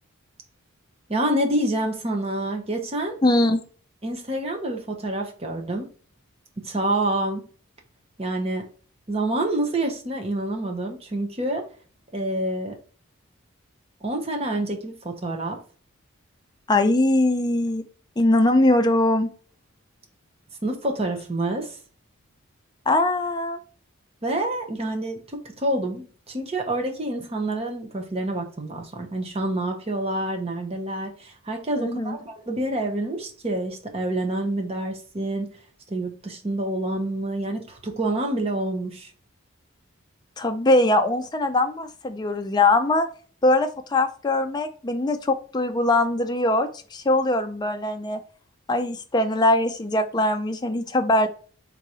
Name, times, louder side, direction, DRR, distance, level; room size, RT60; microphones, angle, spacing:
voice 1, 1.1-3.2 4.0-5.9 6.6-7.5 8.2-8.7 9.1-11.6 12.1-12.8 14.0-15.6 20.6-21.8 24.2-35.5 35.9-39.1, right 1 dB, 30° right, 3 dB, 0.9 m, -27 dB
voice 2, 3.2-3.6 16.7-17.8 18.2-19.3 22.9-23.6 31.8-32.2 40.4-43.1 43.4-48.2 48.7-51.3, left 2 dB, 20° left, 6 dB, 0.5 m, -21 dB
3.8 x 2.9 x 4.8 m, 0.40 s
head